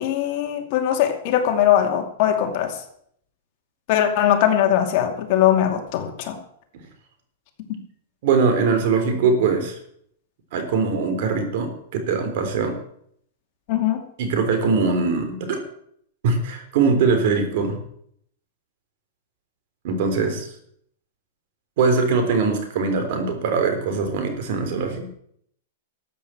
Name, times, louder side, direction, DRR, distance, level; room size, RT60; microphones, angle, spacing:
voice 1, 0.0-2.7 3.9-6.4 13.7-14.0, left 10 dB, 45° left, 4 dB, 2.5 m, -20 dB
voice 2, 8.2-9.8 10.5-12.8 14.2-15.6 16.2-17.8 19.8-20.5 21.8-25.1, right 4 dB, 55° right, 6 dB, 3.7 m, -21 dB
13.5 x 8.4 x 7.6 m, 0.68 s
supercardioid pair, 150°, 0 cm